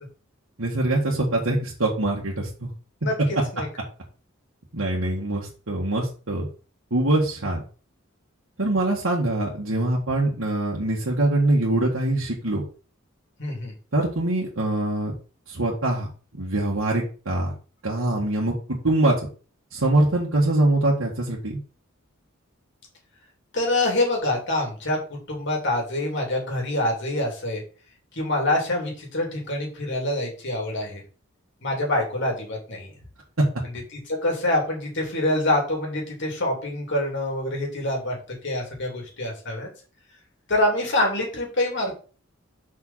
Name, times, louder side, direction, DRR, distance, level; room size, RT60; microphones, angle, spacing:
voice 1, 0.6-2.7 4.7-6.5 6.9-7.6 8.6-12.6 13.9-15.1 15.5-16.1 16.3-17.5 17.8-19.3 19.7-21.6, right 1 dB, 90° right, -4 dB, 1.7 m, -23 dB
voice 2, 13.4-13.7 23.5-27.6 28.1-31.0 31.6-32.9 34.1-38.1 38.4-39.7 40.5-42.0, left 1 dB, 60° left, 0 dB, 3.1 m, -25 dB
5.5 x 5.1 x 5.7 m, 0.37 s
head